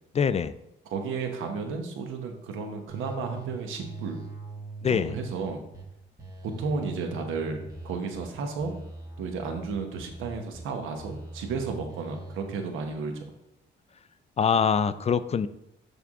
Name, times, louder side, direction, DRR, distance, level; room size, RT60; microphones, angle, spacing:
voice 1, 0.1-0.5 4.8-5.2 14.4-15.5, left 6 dB, 35° left, 14 dB, 0.4 m, -24 dB
voice 2, 0.8-4.2 4.9-5.6 6.4-8.7 9.2-13.1, right 4 dB, 90° right, 5 dB, 1.1 m, -33 dB
sound 1, 2.9-3.4 3.8-5.8 6.2-8.3 8.6-10.6 11.0-12.5, right 2 dB, 20° right, 2.0 m, -42 dB
10.5 x 3.6 x 3.7 m, 0.82 s
cardioid pair, 90°, 20 cm